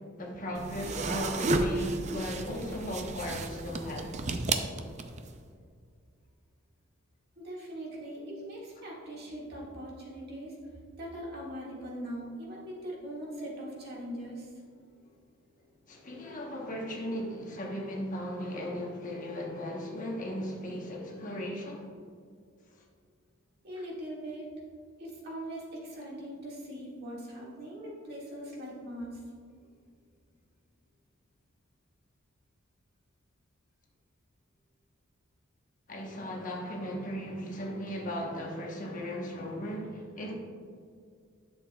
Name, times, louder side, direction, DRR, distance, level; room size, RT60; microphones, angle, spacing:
voice 1, 0.0-4.2 15.9-21.9 22.7-22.8 35.9-40.3, equal, 40° left, -1 dB, 1.1 m, -37 dB
sound 1, 0.6-5.3, right 2 dB, 35° right, 0.5 m, -32 dB
voice 2, 7.4-10.6 11.0-14.5 23.6-24.5 25.0-29.2, right 1 dB, 50° right, -4 dB, 2.0 m, -41 dB
11.5 x 7.0 x 2.3 m, 2.2 s
head